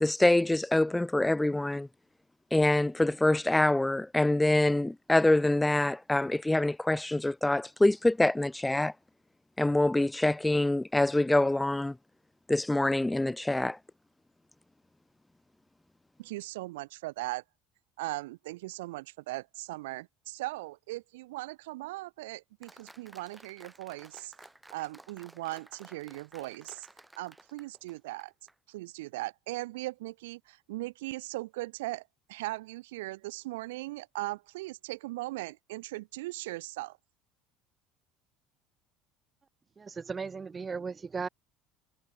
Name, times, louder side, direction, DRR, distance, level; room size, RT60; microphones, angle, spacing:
voice 1, 0.0-1.9 2.5-8.9 9.6-11.9 12.5-13.8, left 1 dB, 10° left, 0.4 m, -25 dB
voice 2, 16.2-17.4 18.0-24.3 24.7-26.9 27.2-28.3 28.7-32.0 32.3-37.0, right 19 dB, 85° right, 1.1 m, -39 dB
Applause, 22.6-28.5, right 2 dB, 10° right, 3.9 m, -55 dB
voice 3, 39.8-41.3, right 5 dB, 25° right, 0.7 m, -36 dB
supercardioid pair, 85°, 0 cm